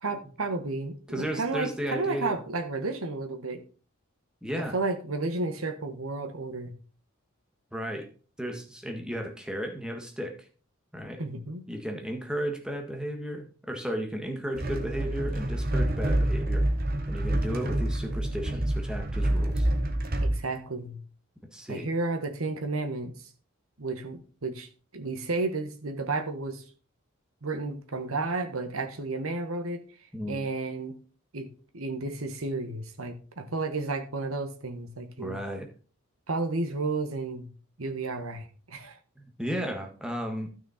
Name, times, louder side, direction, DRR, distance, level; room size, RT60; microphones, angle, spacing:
voice 1, 0.0-3.6 4.6-6.7 11.2-11.6 20.2-21.0 21.7-23.1 23.8-26.6 27.4-29.9 30.3-30.9 31.3-31.5 31.7-35.4 36.3-37.5 37.8-39.0, right 3 dB, 90° right, 6 dB, 1.4 m, -32 dB
voice 2, 1.1-2.4 4.4-4.8 7.7-8.1 8.4-10.3 10.9-11.2 11.7-16.6 17.1-19.7 21.5-21.9 30.1-30.4 35.2-35.7 39.2-40.5, equal, 5° right, 3 dB, 1.6 m, -34 dB
sound 1, 14.6-20.4, right 1 dB, 45° right, 1.3 m, -27 dB
12.5 x 6.3 x 4.3 m, 0.39 s
head